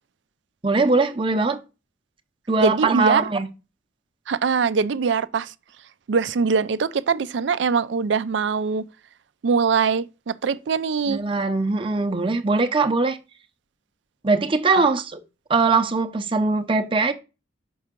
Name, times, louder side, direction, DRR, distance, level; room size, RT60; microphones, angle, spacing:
voice 1, 0.6-1.6 2.5-3.5 11.1-13.2 14.2-15.2 15.5-17.1, right 3 dB, 25° right, 0.6 m, -21 dB
voice 2, 2.6-3.2 4.3-5.5 6.1-8.8 9.4-11.2 14.8-14.9, right 5 dB, 65° right, 0.4 m, -22 dB
5.8 x 5.4 x 3.6 m
head